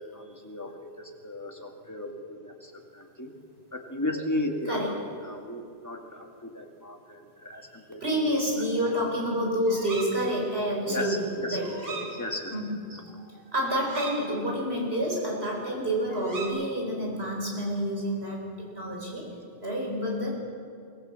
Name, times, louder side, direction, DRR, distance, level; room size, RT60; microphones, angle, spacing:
voice 1, 0.0-3.3 3.7-5.0 5.2-8.3 10.9-11.6 12.2-12.5, left 1 dB, 15° left, 2 dB, 1.9 m, -35 dB
voice 2, 8.0-12.1 12.5-13.0 13.5-19.2 19.6-20.3, equal, 65° right, -1 dB, 5.1 m, -29 dB
sound 1, 8.6-9.2 9.7-10.2 11.6-12.1 12.5-12.6 12.9-14.2 16.1-16.5, right 3 dB, 85° right, 3.5 m, -40 dB
23.0 x 16.5 x 7.6 m, 2.4 s
omnidirectional pair, 1.1 m